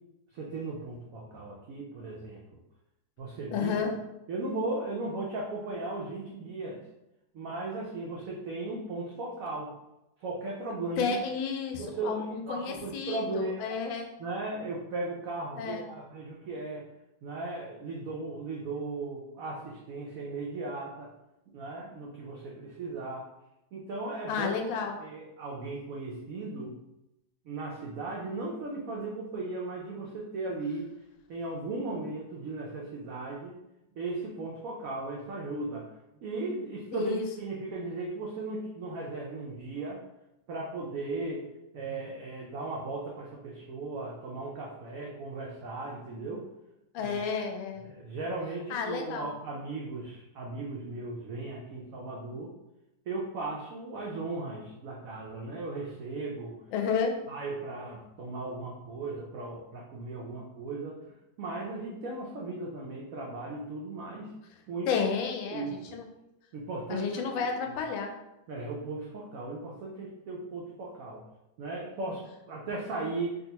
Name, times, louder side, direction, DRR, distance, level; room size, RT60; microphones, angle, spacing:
voice 1, 0.3-2.4 3.2-3.8 4.3-6.8 7.3-9.7 10.2-11.1 11.8-13.8 14.2-16.9 17.2-21.1 21.5-23.3 23.7-24.5 25.0-26.8 27.4-30.9 31.3-33.6 33.9-35.9 36.2-40.0 40.5-41.5 41.7-46.4 47.0-47.1 47.8-52.5 53.1-56.6 57.3-61.0 61.4-64.3 64.7-65.0 65.5-66.0 66.5-67.3 67.7-67.8 68.5-71.2 71.6-73.4, right 2 dB, 85° right, -2 dB, 0.7 m, -37 dB
voice 2, 3.5-3.9 11.0-14.1 15.6-15.8 24.3-25.0 36.9-37.2 46.9-47.8 48.7-49.3 56.7-57.2 64.9-66.1 66.9-68.1, left 6 dB, 85° left, 3 dB, 1.3 m, -31 dB
3.6 x 2.4 x 2.8 m, 0.90 s
omnidirectional pair, 2.1 m